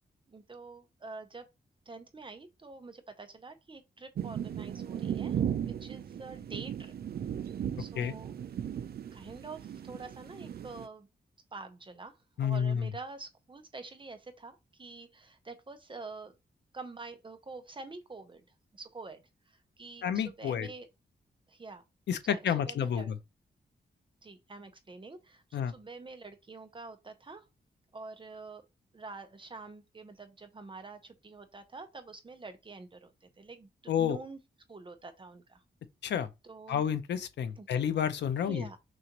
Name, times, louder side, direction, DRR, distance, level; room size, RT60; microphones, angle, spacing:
voice 1, 0.3-1.5 1.9-5.4 5.7-7.0 7.8-8.3 9.1-11.1 11.5-16.3 16.7-18.5 18.7-20.9 21.5-21.8 22.2-23.1 24.2-27.4 27.9-28.6 28.9-34.4 34.7-35.6 36.4-36.8 37.6-37.7 38.4-38.8, right 3 dB, 30° right, 0.7 m, -47 dB
sound 1, 4.2-10.9, right 9 dB, 65° right, 0.5 m, -36 dB
voice 2, 12.4-12.9 20.0-20.7 22.1-23.1 25.5-25.7 33.9-34.2 36.0-36.3 36.7-38.7, left 8 dB, 90° left, 0.6 m, -30 dB
6.2 x 2.5 x 2.9 m
wide cardioid pair, 110°, 18 cm